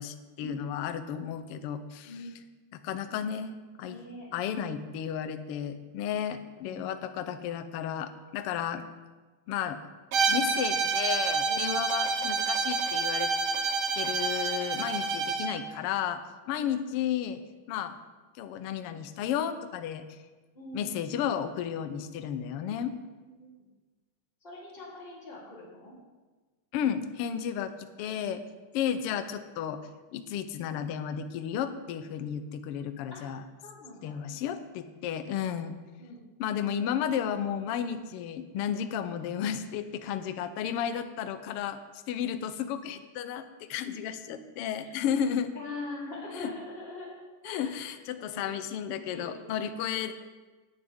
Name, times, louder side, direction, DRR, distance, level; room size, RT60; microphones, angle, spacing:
voice 1, 0.0-2.3 2.7-3.5 3.8-4.0 4.3-8.9 9.5-9.8 10.3-13.3 14.0-16.2 16.5-17.4 17.7-17.9 18.4-20.0 20.7-23.0 26.7-28.4 28.7-29.8 30.1-33.4 34.0-35.8 36.4-41.8 42.1-45.5 46.3-46.5 47.4-50.1, left 9 dB, 80° left, 9 dB, 1.3 m, -33 dB
voice 2, 3.9-4.3 6.6-6.8 11.4-11.8 16.5-16.7 17.7-17.8 20.5-20.9 22.6-22.8 23.4-23.7 24.4-25.9 33.1-33.2 33.6-34.4 36.0-36.2 44.8-44.9 45.6-47.1 47.4-47.9 48.2-48.5 49.0-49.7, left 2 dB, 15° left, -6 dB, 3.5 m, -42 dB
Bowed string instrument, 10.1-15.6, right 4 dB, 65° right, 1.8 m, -28 dB
17.5 x 10.0 x 3.6 m, 1.3 s
omnidirectional pair, 3.6 m